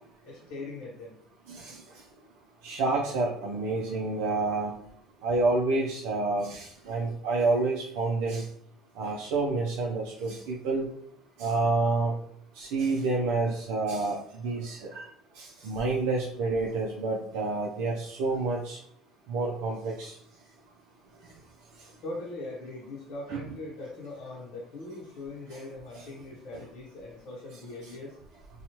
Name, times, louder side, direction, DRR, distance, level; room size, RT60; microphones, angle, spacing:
voice 1, 0.2-1.2 22.0-28.2, left 2 dB, 70° left, -4 dB, 0.8 m, -41 dB
voice 2, 1.5-1.8 2.6-4.7 5.2-8.5 9.0-10.9 11.4-12.2 12.5-15.1 15.3-18.8 19.3-20.2 21.8-21.9 23.3-23.4 25.9-26.1, right 3 dB, 85° right, -3 dB, 0.4 m, -28 dB
2.9 x 2.3 x 2.7 m, 0.67 s
cardioid pair, 115°, 0 cm